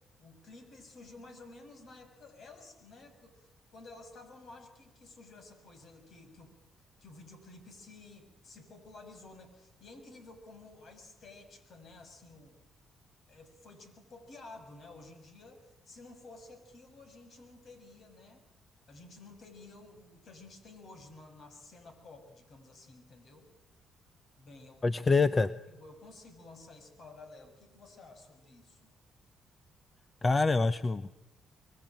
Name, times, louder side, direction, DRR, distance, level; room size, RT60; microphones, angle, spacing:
voice 1, 0.2-12.6 13.3-18.4 18.9-23.5 24.3-25.0 25.7-28.9, left 2 dB, 55° left, 7 dB, 6.7 m, -53 dB
voice 2, 24.8-25.5 30.2-31.2, left 3 dB, 30° left, 13 dB, 0.9 m, -26 dB
25.0 x 22.0 x 9.1 m, 0.97 s
cardioid pair, 90°, 0 cm